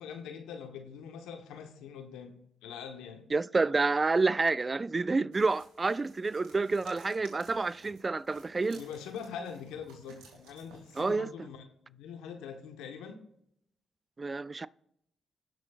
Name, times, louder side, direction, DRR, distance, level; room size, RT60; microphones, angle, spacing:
voice 1, 0.0-2.4 2.6-3.2 8.7-13.2, left 7 dB, 85° left, 1.2 m, -43 dB
voice 2, 3.3-8.8 11.0-11.3 14.2-14.7, right 3 dB, 35° right, 0.4 m, -29 dB
sound 1, 5.3-11.1, right 3 dB, 90° right, 2.4 m, -58 dB
17.5 x 6.3 x 2.5 m
supercardioid pair, 50°, 0 cm